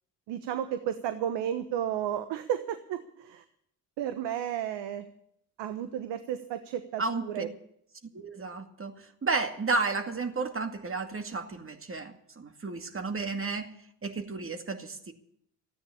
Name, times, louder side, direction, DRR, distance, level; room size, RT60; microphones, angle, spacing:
voice 1, 0.3-3.4 4.0-5.1 5.6-7.5, right 10 dB, 70° right, 10 dB, 1.2 m, -33 dB
voice 2, 7.0-7.5 8.1-13.8 14.0-15.1, right 3 dB, 30° right, 6 dB, 2.2 m, -32 dB
14.0 x 9.4 x 8.6 m, 0.72 s
hypercardioid pair, 60°, 44 cm